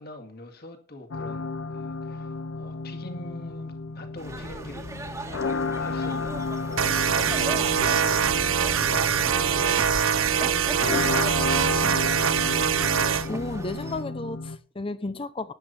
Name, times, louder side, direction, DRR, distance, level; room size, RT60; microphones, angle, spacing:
voice 1, 0.0-12.5, left 1 dB, 50° left, 2.2 m, -44 dB
sound 1, 1.1-14.6, left 3 dB, 70° left, 0.8 m, -33 dB
sound 2, 4.2-14.0, right 1 dB, 15° right, 1.6 m, -38 dB
sound 3, 6.8-13.3, right 7 dB, 80° right, 0.7 m, -23 dB
voice 2, 13.3-15.5, left 2 dB, 25° left, 0.7 m, -33 dB
12.5 x 10.0 x 4.3 m
head